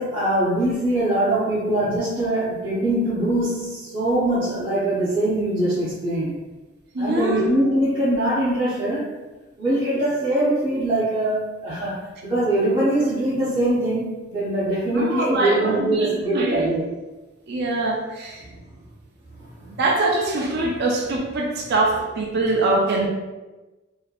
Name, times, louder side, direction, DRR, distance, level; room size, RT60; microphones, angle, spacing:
voice 1, 0.0-6.4 7.0-9.2 9.6-16.8 19.4-19.8 20.6-20.7, right 1 dB, 25° right, -13 dB, 1.0 m, -22 dB
voice 2, 6.9-7.4 14.9-16.7 17.5-18.4 19.8-23.1, right 2 dB, 55° right, -1 dB, 0.5 m, -23 dB
3.3 x 2.7 x 2.4 m, 1.1 s
head